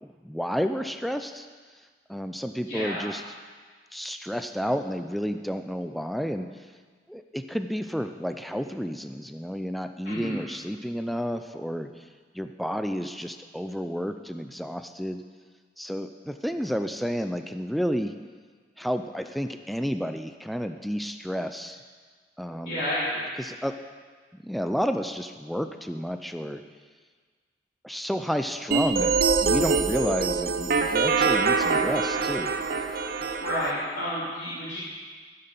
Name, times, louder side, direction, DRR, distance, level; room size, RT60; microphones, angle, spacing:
voice 1, 0.0-1.5 2.1-3.2 3.9-6.5 7.1-12.0 12.3-15.2 15.8-18.1 18.8-21.8 22.4-22.8 23.4-23.8 24.3-26.6 27.8-29.2 29.4-32.5, equal, ahead, 8 dB, 0.3 m, -31 dB
voice 2, 2.7-3.1 10.0-10.4 22.6-23.3 33.4-34.8, equal, 85° left, -10 dB, 2.9 m, -30 dB
sound 1, 28.7-33.7, right 4 dB, 55° right, 0.6 m, -24 dB
14.5 x 5.8 x 6.8 m, 1.5 s
head